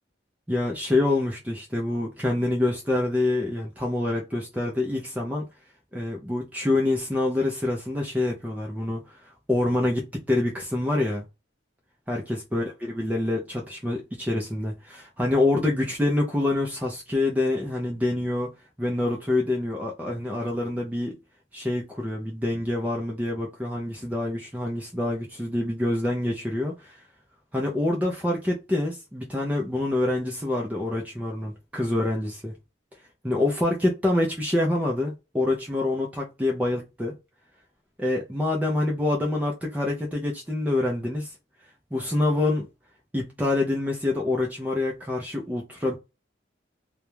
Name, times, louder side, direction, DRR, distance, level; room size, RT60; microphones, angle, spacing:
voice 1, 0.5-5.5 5.9-11.2 12.1-18.5 18.8-21.1 21.5-27.0 27.5-32.6 33.2-37.1 38.0-41.3 41.9-42.7 43.1-46.0, left 2 dB, 10° right, 0.4 m, -26 dB
2.4 x 2.1 x 3.0 m
head